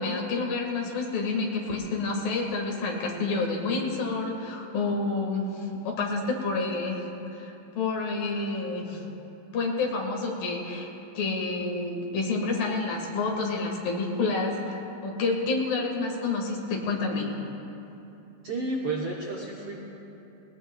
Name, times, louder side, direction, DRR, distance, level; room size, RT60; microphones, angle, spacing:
voice 1, 0.0-7.1 7.3-9.0 9.5-17.4, left 3 dB, 70° left, 0 dB, 3.3 m, -29 dB
voice 2, 18.4-19.7, right 2 dB, 80° right, -3 dB, 1.3 m, -31 dB
21.5 x 19.0 x 2.3 m, 2.9 s
omnidirectional pair, 4.2 m